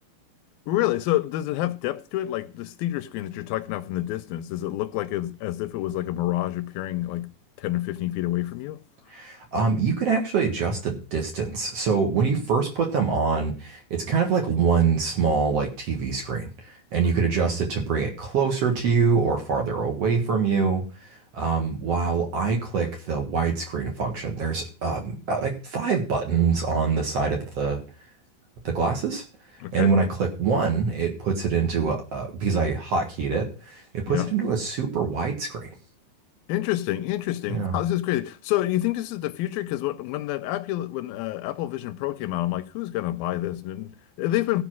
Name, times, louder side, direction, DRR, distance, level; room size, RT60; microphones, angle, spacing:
voice 1, 0.7-7.3 7.6-8.8 29.6-29.9 34.1-34.3 36.5-44.6, left 15 dB, 80° left, 2.4 m, -28 dB
voice 2, 9.1-27.8 28.6-29.2 29.7-35.7 37.5-37.7, right 5 dB, 50° right, 2.3 m, -25 dB
15.0 x 5.6 x 6.1 m
omnidirectional pair, 4.3 m